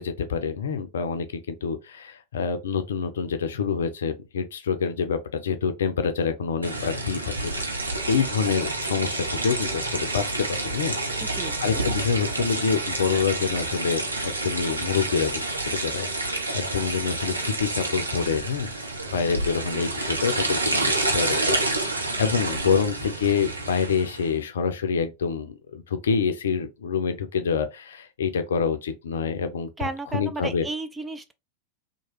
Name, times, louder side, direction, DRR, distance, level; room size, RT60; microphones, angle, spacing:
voice 1, 0.0-7.7 8.1-18.7 19.0-30.7, left 6 dB, 65° left, 0.5 m, -27 dB
sound 1, 6.6-24.3, right 2 dB, 80° right, 0.6 m, -29 dB
voice 2, 11.2-11.8 29.8-31.3, right 3 dB, 10° right, 0.4 m, -34 dB
2.9 x 2.2 x 3.0 m
figure-of-eight pair, 90°, 0 cm